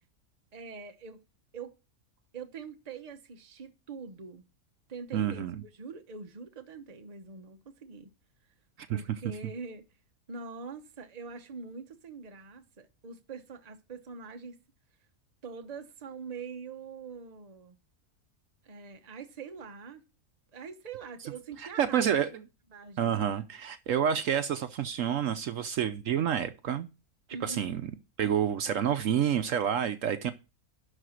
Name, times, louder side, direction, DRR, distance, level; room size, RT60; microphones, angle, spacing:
voice 1, 0.5-1.2 1.5-1.8 2.3-4.4 4.9-8.1 8.9-9.9 10.3-14.6 15.4-17.8 18.6-20.0 20.5-22.2 22.7-23.1 27.3-27.9, right 5 dB, 30° right, 0.9 m, -44 dB
voice 2, 5.1-5.6 8.9-9.0 21.8-22.3 23.0-26.9 27.4-27.9 28.2-30.3, right 9 dB, 65° right, 1.0 m, -28 dB
11.5 x 4.1 x 6.3 m
omnidirectional pair, 1.5 m